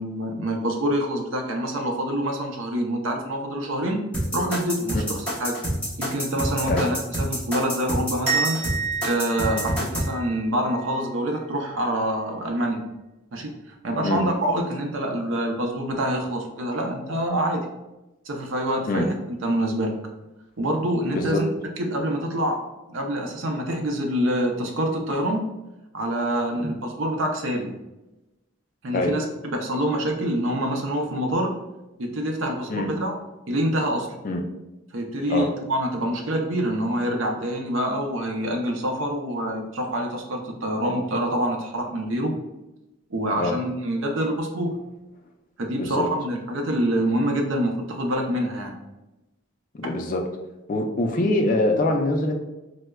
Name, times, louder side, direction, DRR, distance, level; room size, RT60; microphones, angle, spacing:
voice 1, 0.0-4.0 4.3-5.6 6.0-8.6 9.0-12.8 13.3-13.5 13.8-17.7 18.2-20.0 20.6-21.5 21.8-22.6 22.9-25.4 25.9-27.7 28.8-31.5 32.0-33.1 33.5-34.1 34.9-42.4 43.1-44.8 45.6-48.7, right 1 dB, 65° right, 3 dB, 0.5 m, -26 dB
sound 1, 4.1-10.1, equal, 5° left, 0.9 m, -27 dB
sound 2, 8.3-11.0, right 5 dB, 30° right, 0.6 m, -29 dB
voice 2, 49.7-50.2 50.7-52.3, left 2 dB, 40° left, 3 dB, 0.3 m, -24 dB
4.5 x 2.1 x 2.2 m, 0.99 s
head